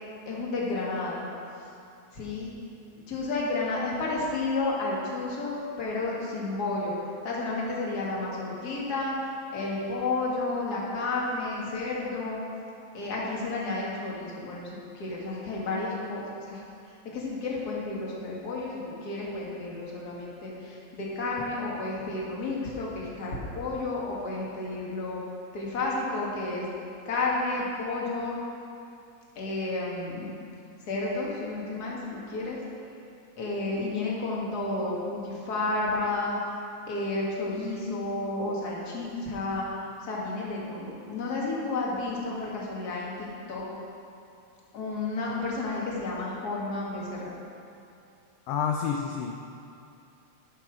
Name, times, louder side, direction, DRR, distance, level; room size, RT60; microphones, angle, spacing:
voice 1, 0.3-1.2 2.1-2.5 3.0-6.9 7.2-9.2 9.5-12.4 12.9-16.6 17.0-25.2 25.5-26.7 27.1-28.4 29.4-30.3 30.9-32.6 33.4-36.4 36.9-43.7 44.7-47.3, left 2 dB, 40° left, -4 dB, 1.9 m, -31 dB
voice 2, 48.5-49.3, left 7 dB, 75° left, 2 dB, 1.5 m, -28 dB
12.0 x 5.9 x 6.0 m, 2.6 s
omnidirectional pair, 3.4 m